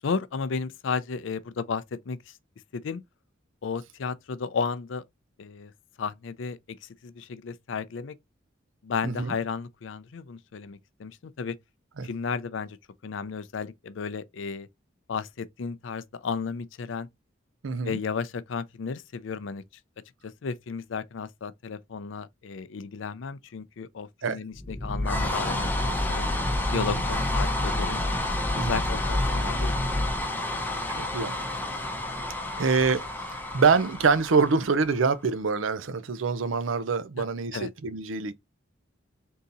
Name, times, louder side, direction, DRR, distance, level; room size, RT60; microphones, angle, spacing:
voice 1, 0.0-2.3 2.7-3.0 3.6-5.0 5.4-5.7 6.0-8.2 8.8-11.6 12.0-12.8 13.0-14.7 15.1-17.1 17.8-19.6 20.2-26.3 26.7-28.0 28.5-30.2 37.5-37.7, left 5 dB, 70° left, 0.5 m, -33 dB
voice 2, 9.0-9.3 12.0-12.1 17.6-18.0 24.2-24.4 26.7-27.0 28.5-28.8 31.0-31.3 32.6-33.1 33.5-38.3, right 5 dB, 80° right, 0.6 m, -25 dB
sound 1, 24.5-35.0, left 1 dB, 10° left, 0.8 m, -29 dB
3.7 x 2.8 x 3.9 m
head